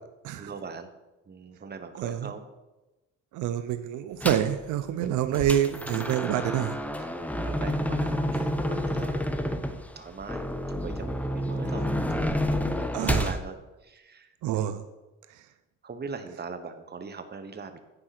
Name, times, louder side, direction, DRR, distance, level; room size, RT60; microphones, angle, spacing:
voice 1, 0.4-0.9 1.3-2.5 7.0-14.3 14.6-14.7 15.8-17.8, right 5 dB, 35° right, 8 dB, 1.1 m, -41 dB
voice 2, 2.0-2.3 3.3-6.8 12.9-13.3 14.4-14.8, right 11 dB, 85° right, 11 dB, 0.6 m, -27 dB
sound 1, 4.2-4.6 5.0-13.4, left 1 dB, 5° left, 0.7 m, -29 dB
10.0 x 4.7 x 5.9 m, 1.1 s
cardioid pair, 90°, 30 cm